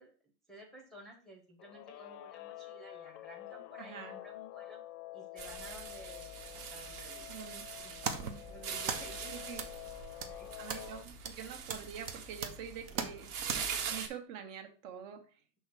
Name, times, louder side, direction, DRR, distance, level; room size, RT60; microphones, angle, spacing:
voice 1, 0.0-4.8 5.1-7.3 7.8-7.9 8.4-9.4 10.1-10.8 12.9-13.4, right 1 dB, ahead, 1 dB, 0.8 m, -54 dB
Guitar, 1.6-11.0, left 16 dB, 70° left, 0.7 m, -48 dB
voice 2, 3.8-4.2 7.3-7.6 9.3-9.6 10.6-15.2, right 8 dB, 50° right, 5 dB, 1.3 m, -46 dB
sound 1, 5.4-14.1, right 6 dB, 65° right, 1.5 m, -43 dB
sound 2, 7.7-13.6, right 6 dB, 30° right, 0.3 m, -42 dB
6.2 x 3.4 x 5.9 m, 0.38 s
supercardioid pair, 160°, 49 cm